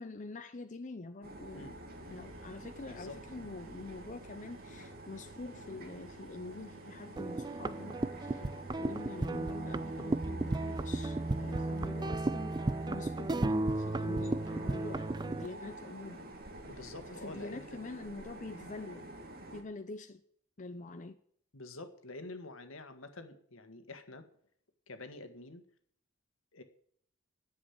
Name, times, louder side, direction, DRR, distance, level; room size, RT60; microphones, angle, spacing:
voice 1, 0.0-1.8 2.0-8.0 8.3-8.4 8.8-12.6 12.9-16.3 17.1-19.1 19.5-20.2 20.6-21.2, left 3 dB, 40° left, 7 dB, 0.7 m, -45 dB
sound 1, 1.2-19.6, right 1 dB, 50° right, 2.0 m, -49 dB
Engine, 1.9-11.9, right 4 dB, 80° right, 1.3 m, -58 dB
sound 2, 7.2-15.5, right 2 dB, 20° right, 0.4 m, -34 dB
voice 2, 16.7-17.8 21.5-24.3 24.9-25.6 26.5-26.6, left 2 dB, 75° left, 9 dB, 1.6 m, -47 dB
10.5 x 7.6 x 9.4 m, 0.63 s
head